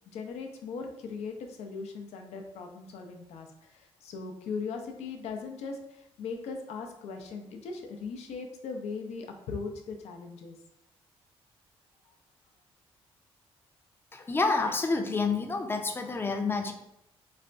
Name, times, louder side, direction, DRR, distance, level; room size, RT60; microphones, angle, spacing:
voice 1, 0.1-10.6 12.1-12.2, left 4 dB, 80° left, 4 dB, 0.5 m, -39 dB
voice 2, 14.1-16.7, left 4 dB, 20° left, 6 dB, 0.4 m, -28 dB
4.0 x 2.2 x 2.5 m, 0.82 s
cardioid pair, 90°, 11 cm